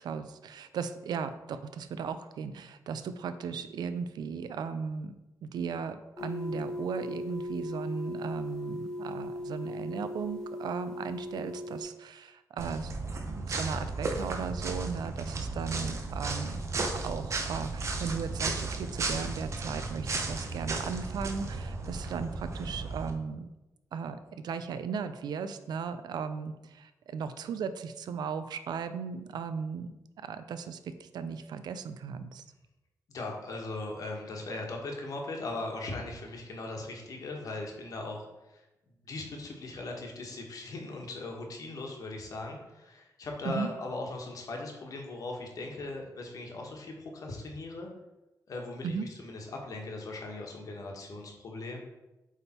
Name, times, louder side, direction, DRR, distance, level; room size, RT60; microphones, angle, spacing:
voice 1, 0.0-5.1 5.4-12.9 13.3-16.6 16.9-23.5 23.9-29.9 30.2-32.4 43.4-43.7 48.8-49.1, right 6 dB, 85° right, 11 dB, 0.5 m, -36 dB
sound 1, 6.2-11.8, left 1 dB, 5° left, 1.3 m, -38 dB
sound 2, 12.6-23.1, right 3 dB, 45° right, 0.9 m, -34 dB
voice 2, 33.1-38.6 39.0-47.9 48.5-51.8, left 2 dB, 55° left, 1 dB, 1.4 m, -39 dB
8.1 x 3.6 x 4.3 m, 1.0 s
wide cardioid pair, 150°, 7 cm